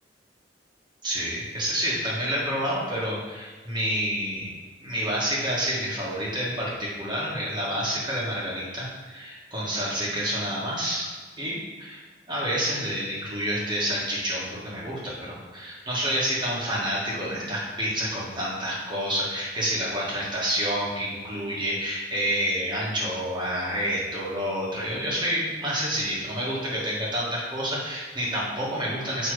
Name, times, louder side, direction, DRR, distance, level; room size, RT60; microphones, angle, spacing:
voice 1, 1.0-4.5 4.8-11.1 11.4-12.0 12.3-29.3, equal, 25° right, -6 dB, 1.8 m, -28 dB
7.0 x 3.3 x 4.8 m, 1.4 s
head